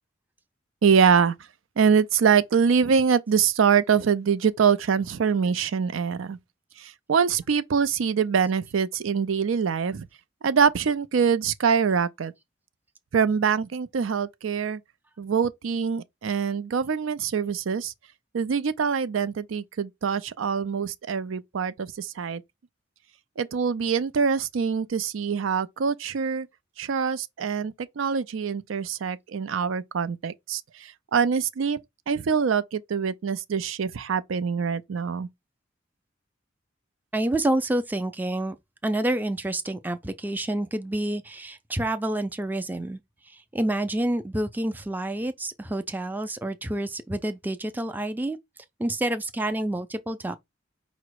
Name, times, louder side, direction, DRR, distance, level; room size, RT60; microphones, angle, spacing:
voice 1, 0.8-1.3 1.8-6.4 6.8-10.1 10.4-12.3 13.1-14.8 15.2-17.9 18.3-22.4 23.4-26.5 26.8-31.8 32.1-35.3, right 6 dB, 90° right, 0.4 m, -24 dB
voice 2, 37.1-38.6 38.8-43.0 43.3-48.4 48.8-50.4, right 1 dB, 10° right, 0.4 m, -28 dB
4.9 x 2.1 x 4.6 m
head